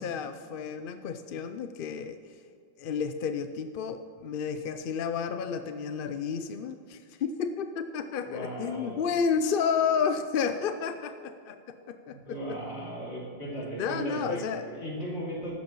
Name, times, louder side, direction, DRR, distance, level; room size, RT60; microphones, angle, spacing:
voice 1, 0.0-2.2 2.8-11.6 11.9-12.4 13.8-14.6, left 6 dB, 60° left, 8 dB, 0.7 m, -31 dB
voice 2, 8.2-9.0 12.1-15.5, right 1 dB, 85° left, -4 dB, 3.0 m, -37 dB
14.5 x 12.5 x 3.0 m, 2.3 s
omnidirectional pair, 1.1 m